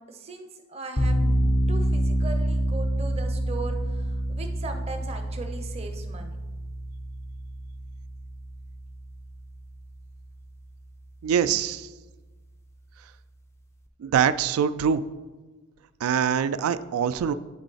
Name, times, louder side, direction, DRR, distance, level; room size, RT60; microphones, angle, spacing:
voice 1, 0.0-1.4 1.7-6.4, right 3 dB, 30° right, 5 dB, 0.6 m, -38 dB
sound 1, 1.0-9.8, equal, 15° left, 0.3 m, -27 dB
voice 2, 11.2-11.9 14.0-15.0 16.0-17.3, right 8 dB, 80° right, 15 dB, 0.3 m, -24 dB
8.0 x 4.0 x 3.9 m, 1.2 s
head